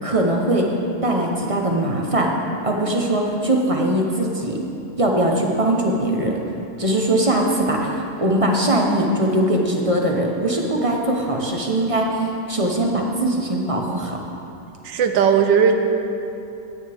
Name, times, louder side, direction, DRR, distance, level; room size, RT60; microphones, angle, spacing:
voice 1, 0.0-0.7 1.0-2.3 2.6-4.6 5.0-6.4 6.8-14.2, right 1 dB, 25° right, 0 dB, 0.8 m, -21 dB
voice 2, 14.8-15.7, right 7 dB, 80° right, 6 dB, 1.5 m, -16 dB
17.0 x 9.4 x 3.5 m, 2.9 s
omnidirectional pair, 2.0 m